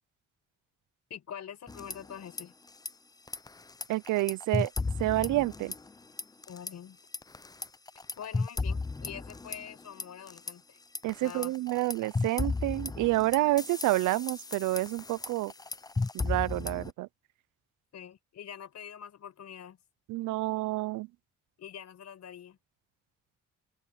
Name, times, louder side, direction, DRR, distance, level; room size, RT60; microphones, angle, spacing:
voice 1, 1.1-2.5 6.5-7.0 8.2-10.8 11.2-11.5 17.9-19.8 21.6-22.6, left 9 dB, 60° left, 5.0 m, -45 dB
sound 1, 1.7-2.4 2.7-2.9 3.3-5.9 6.2-6.7 7.1-10.5 10.9-16.9, left 3 dB, 15° left, 0.5 m, -35 dB
voice 2, 3.9-4.7 5.0-5.7 11.0-15.5 16.1-17.1 20.1-21.1, right 18 dB, 90° right, 0.6 m, -29 dB
cardioid pair, 90°, 30 cm